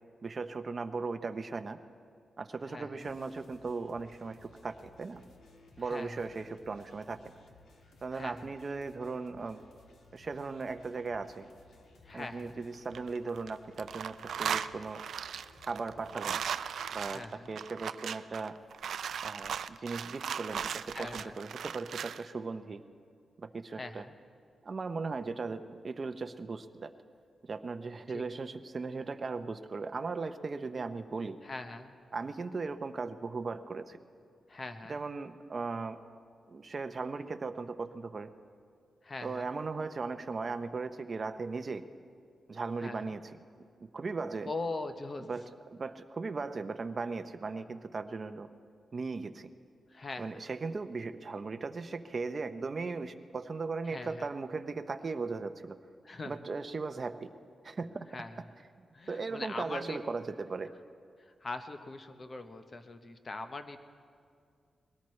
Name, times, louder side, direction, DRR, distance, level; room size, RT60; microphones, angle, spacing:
voice 1, 0.2-1.8 2.4-5.2 5.8-7.2 8.0-9.6 10.1-11.5 12.1-15.0 15.6-16.4 16.9-18.6 19.2-22.8 23.4-24.1 24.6-26.9 27.4-31.4 32.1-34.0 34.9-36.0 36.5-38.3 39.2-41.9 42.5-43.3 43.9-44.5 45.3-48.5 48.9-49.5 50.2-55.8 56.2-57.3 57.6-58.1 58.8-60.7, right 4 dB, 35° right, 8 dB, 0.6 m, -37 dB
voice 2, 2.6-3.1 5.8-6.3 8.1-8.5 12.0-12.6 17.0-17.6 20.9-21.4 23.8-24.2 28.1-28.2 31.4-32.0 34.5-35.0 39.0-39.5 42.8-43.1 44.4-45.3 49.9-50.4 53.9-54.3 56.0-56.4 58.1-58.4 58.9-60.0 61.2-63.8, left 3 dB, 35° left, 8 dB, 0.8 m, -42 dB
sound 1, 3.0-17.3, left 3 dB, 80° left, 1.5 m, -60 dB
sound 2, 12.7-13.5 13.8-22.2, right 8 dB, 85° right, 0.3 m, -37 dB
22.0 x 18.0 x 3.2 m, 2.3 s
wide cardioid pair, 130°, 0 cm